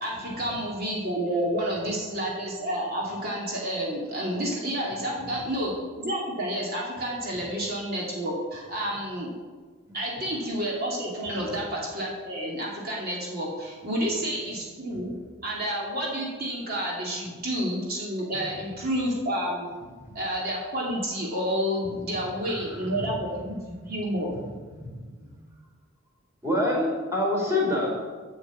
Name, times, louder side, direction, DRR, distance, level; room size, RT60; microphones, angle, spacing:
voice 1, 0.0-5.7 6.0-9.3 9.9-15.1 15.4-19.7 20.1-24.4, equal, 50° right, -4 dB, 2.6 m, -30 dB
voice 2, 22.4-23.1 24.8-25.3 26.4-27.9, left 1 dB, 15° right, -3 dB, 3.4 m, -27 dB
11.0 x 6.4 x 8.3 m, 1.5 s
head